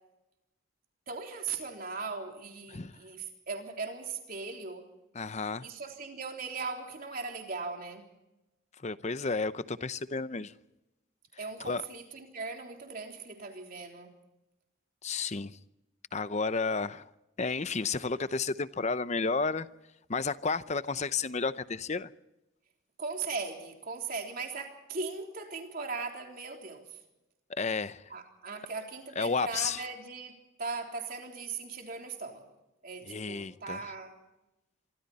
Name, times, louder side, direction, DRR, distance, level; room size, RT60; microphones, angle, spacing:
voice 1, 1.1-4.8 5.6-8.0 11.4-14.1 23.0-26.8 28.1-30.3 30.6-32.4 32.8-34.1, right 4 dB, 45° right, 2 dB, 3.6 m, -39 dB
voice 2, 5.1-5.7 8.8-10.5 11.6-11.8 15.0-15.6 16.1-17.1 17.4-19.7 20.1-22.1 27.6-28.0 29.2-29.8 33.1-33.9, left 4 dB, 35° left, 14 dB, 0.7 m, -32 dB
26.0 x 24.5 x 4.2 m, 0.95 s
head